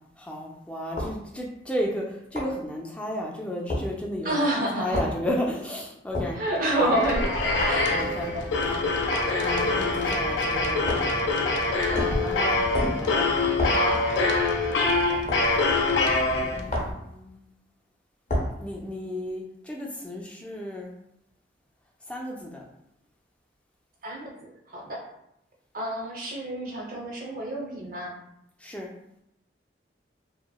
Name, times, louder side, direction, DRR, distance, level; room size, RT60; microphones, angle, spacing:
voice 1, 0.2-4.5 4.8-6.4 6.8-6.9 7.9-8.3 8.6-9.0 9.4-10.9 11.8-12.6 12.9-13.3 14.9-15.3 16.4-17.4 18.6-20.9 22.1-22.7 28.6-28.9, left 1 dB, 5° left, -2 dB, 0.3 m, -33 dB
sound 1, 1.0-1.2 2.4-2.6 3.7-3.9 4.9-5.2 6.1-6.4 7.6-7.8 9.1-9.3 10.9-11.2 11.9-12.2 12.7-13.1 13.6-13.9 15.3-15.5 16.7-17.0 18.3-18.6, left 1 dB, 40° left, 0.7 m, -29 dB
voice 2, 4.2-5.0 6.4-7.3 7.6-8.0 13.7-14.1 24.0-24.4 24.7-25.0 25.7-28.2, right 1 dB, 50° right, -2 dB, 0.7 m, -28 dB
sound 2, 6.5-16.9, left 3 dB, 75° left, 0.4 m, -25 dB
2.9 x 2.0 x 2.2 m, 0.78 s
head